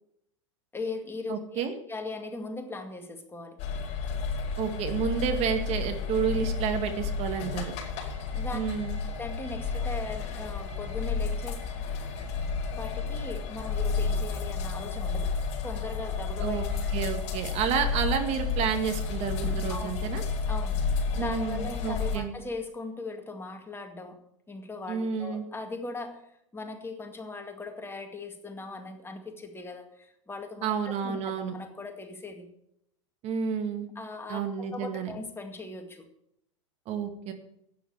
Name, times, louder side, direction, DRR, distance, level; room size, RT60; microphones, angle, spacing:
voice 1, 0.7-1.6 1.9-3.6 8.3-8.6 9.2-11.6 12.7-15.3 15.6-17.1 19.7-19.9 20.5-20.9 21.1-32.5 34.0-36.1, left 3 dB, 15° left, 5 dB, 2.0 m, -39 dB
voice 2, 1.3-1.7 4.6-7.7 8.5-9.0 16.4-16.6 16.9-20.2 21.2-22.3 24.9-25.4 30.6-31.5 33.2-33.9 34.3-35.1 36.9-37.3, right 7 dB, 40° right, 6 dB, 2.0 m, -30 dB
sound 1, 3.6-22.2, left 4 dB, 45° left, 4.8 m, -31 dB
12.0 x 9.4 x 6.5 m, 0.75 s
hypercardioid pair, 95°, 16 cm